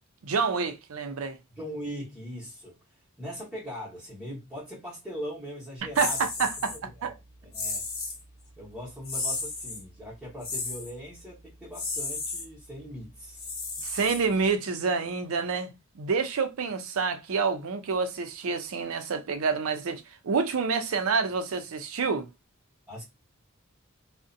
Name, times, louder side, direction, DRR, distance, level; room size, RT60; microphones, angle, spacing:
voice 1, 0.2-1.4 6.0-6.8 7.0-7.1 13.8-22.3, right 5 dB, 80° right, 0.5 m, -28 dB
voice 2, 1.5-6.3 6.7-7.1 7.4-7.8 8.6-13.5 22.9-23.0, equal, ahead, 0.9 m, -40 dB
sound 1, 5.9-6.8 7.5-8.2 9.0-9.8 10.4-10.9 11.7-12.4 13.3-14.5, left 3 dB, 70° left, 0.9 m, -33 dB
2.4 x 2.1 x 2.5 m
head